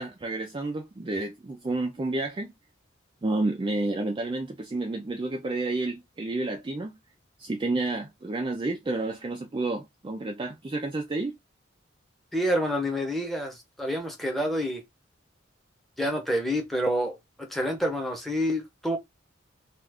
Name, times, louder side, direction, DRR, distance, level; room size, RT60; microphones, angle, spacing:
voice 1, 0.0-2.5 3.2-7.0 7.4-11.4, right 2 dB, 25° right, 0.3 m, -30 dB
voice 2, 12.3-14.8 16.0-19.0, equal, ahead, 0.7 m, -28 dB
2.4 x 2.4 x 3.4 m
head